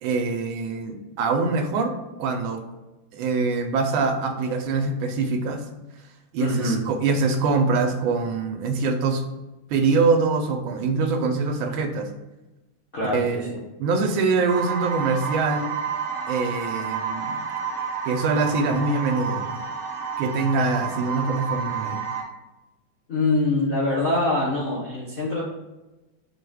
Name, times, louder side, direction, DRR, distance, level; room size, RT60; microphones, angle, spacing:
voice 1, 0.0-1.9 2.2-2.6 3.1-5.6 6.3-9.2 9.7-12.1 13.1-13.5 13.8-15.7 16.3-17.4 18.0-19.5 20.2-22.0, right 4 dB, 80° right, 4 dB, 1.4 m, -24 dB
voice 2, 6.4-6.8 12.9-13.5 23.1-25.4, left 2 dB, 85° left, -5 dB, 0.4 m, -24 dB
sound 1, 14.5-22.2, right 6 dB, 55° right, 0.9 m, -30 dB
4.7 x 2.3 x 4.7 m, 1.0 s
omnidirectional pair, 2.2 m